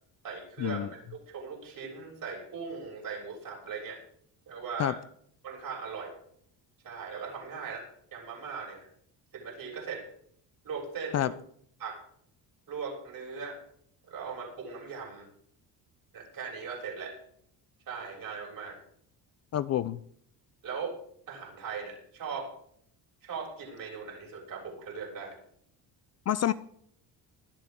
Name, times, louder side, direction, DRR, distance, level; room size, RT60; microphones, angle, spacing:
voice 1, 0.2-4.0 4.5-5.0 5.4-6.1 6.8-8.9 9.3-10.0 10.6-11.3 11.8-12.0 12.7-13.6 14.1-15.3 16.1-17.2 17.9-18.8 20.6-20.9 21.3-22.5 23.2-25.4, right 5 dB, 55° right, -2 dB, 7.0 m, -39 dB
voice 2, 19.5-20.0 26.3-26.5, left 11 dB, 40° left, 16 dB, 0.4 m, -27 dB
20.5 x 12.0 x 3.6 m, 0.68 s
cardioid pair, 145°, 42 cm